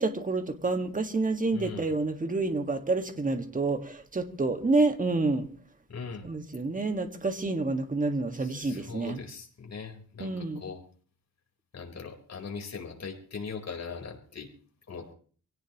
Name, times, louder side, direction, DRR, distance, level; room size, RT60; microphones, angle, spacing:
voice 1, 0.0-5.5 6.2-9.2 10.2-10.6, right 3 dB, 25° right, 1.7 m, -28 dB
voice 2, 1.5-1.9 5.9-6.3 8.3-10.8 11.7-14.5 14.9-15.1, left 5 dB, 50° left, 4.2 m, -40 dB
25.0 x 17.5 x 3.0 m
wide cardioid pair, 140°, 34 cm